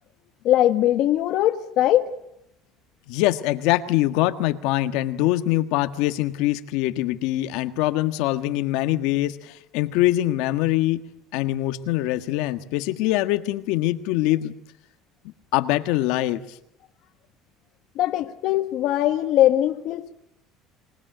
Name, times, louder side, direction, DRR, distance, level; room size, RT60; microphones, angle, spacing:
voice 1, 0.4-2.1 18.0-20.1, left 13 dB, 55° left, 1.3 m, -21 dB
voice 2, 3.1-11.0 11.3-14.5 15.5-16.4, left 15 dB, 75° left, 1.5 m, -23 dB
25.0 x 20.0 x 9.2 m
cardioid pair, 145°, 0 cm